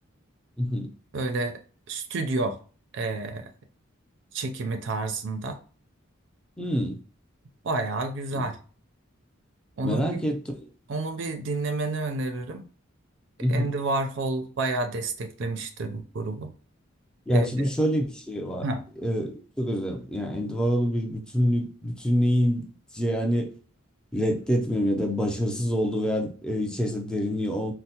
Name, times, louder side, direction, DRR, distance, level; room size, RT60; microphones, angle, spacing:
voice 1, 0.6-0.9 6.6-7.0 8.3-8.5 9.8-10.7 13.4-13.7 17.3-18.6 19.0-22.7 22.9-23.5 24.1-27.7, equal, 5° left, 0.5 m, -26 dB
voice 2, 1.1-1.6 1.9-2.6 2.9-3.5 4.3-5.6 7.6-8.6 9.8-10.2 10.9-12.7 13.5-16.5 17.3-17.5 18.6-18.8, right 2 dB, 60° right, 0.4 m, -29 dB
4.3 x 2.0 x 2.8 m
head